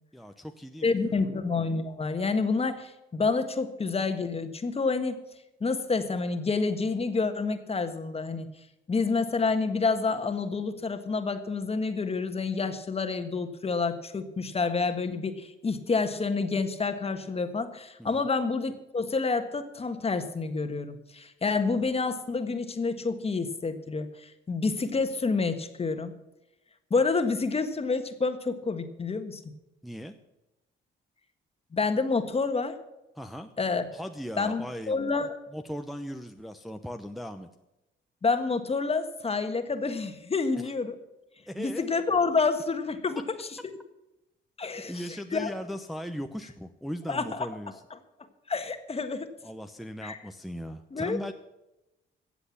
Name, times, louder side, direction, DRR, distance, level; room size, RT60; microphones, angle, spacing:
voice 1, 0.1-1.1 18.0-18.3 29.8-30.1 33.2-33.5 33.9-35.0 35.5-37.5 41.5-41.9 44.9-47.8 49.4-51.3, equal, ahead, 5 dB, 0.8 m, -38 dB
voice 2, 0.8-5.2 5.6-8.5 8.9-26.1 26.9-29.4 31.7-32.8 33.6-33.8 34.4-35.3 38.2-41.0 41.6-43.5 44.6-45.6 47.1-47.5 47.9-48.0 48.5-49.3 50.0-50.2 50.9-51.2, left 4 dB, 30° left, 8 dB, 1.5 m, -28 dB
15.0 x 8.0 x 7.1 m, 0.95 s
cardioid pair, 90°, 20 cm